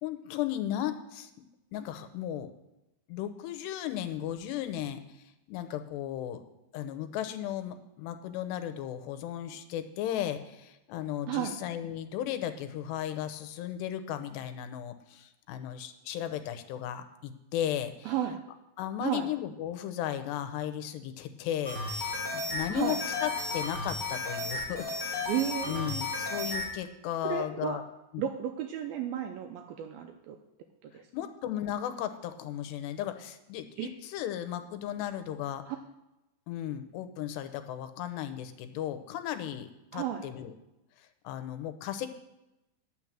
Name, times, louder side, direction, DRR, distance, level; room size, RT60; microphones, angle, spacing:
voice 1, 0.0-1.3 1.7-2.5 3.1-6.4 6.7-18.1 18.8-25.3 25.6-27.8 28.1-28.2 31.1-35.6 36.5-40.5 41.0-42.1, left 11 dB, 80° left, 9 dB, 2.9 m, -35 dB
voice 2, 18.1-18.4 19.0-19.3 22.7-23.0 25.3-26.0 27.2-27.8 28.2-30.4 30.8-31.0 33.8-33.9 35.7-35.8 39.9-40.2, right 10 dB, 80° right, 5 dB, 2.2 m, -33 dB
sound 1, 21.6-26.7, left 2 dB, 20° left, 2.7 m, -34 dB
10.5 x 6.3 x 7.3 m, 0.93 s
omnidirectional pair, 4.9 m